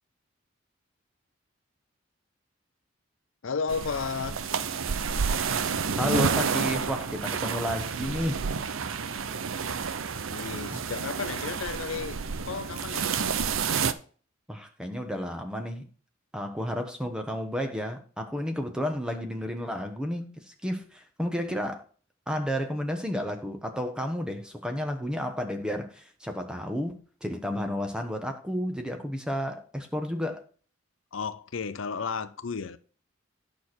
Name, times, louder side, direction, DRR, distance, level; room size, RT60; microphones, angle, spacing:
voice 1, 3.4-4.4 10.3-13.3 31.1-32.8, left 5 dB, 70° left, 0.6 m, -33 dB
sound 1, 3.7-13.9, right 6 dB, 75° right, 0.7 m, -30 dB
voice 2, 6.0-8.4 10.7-10.8 14.5-15.8 16.3-21.8 22.3-30.4, equal, 5° right, 1.2 m, -32 dB
9.4 x 6.3 x 4.4 m
head